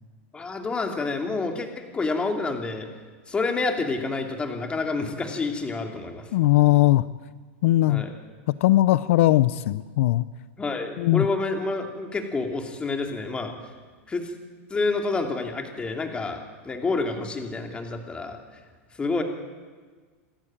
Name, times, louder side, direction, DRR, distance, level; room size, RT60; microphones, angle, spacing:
voice 1, 0.3-1.7 1.9-2.9 3.3-6.3 7.9-8.1 10.6-13.5 14.1-14.3 14.7-18.4 19.0-19.2, left 3 dB, 15° left, 4 dB, 2.8 m, -28 dB
voice 2, 6.3-7.0 7.6-8.0 8.6-10.2 11.0-11.3, left 16 dB, 70° left, 16 dB, 0.6 m, -19 dB
27.0 x 13.5 x 8.9 m, 1.5 s
supercardioid pair, 140°, 7 cm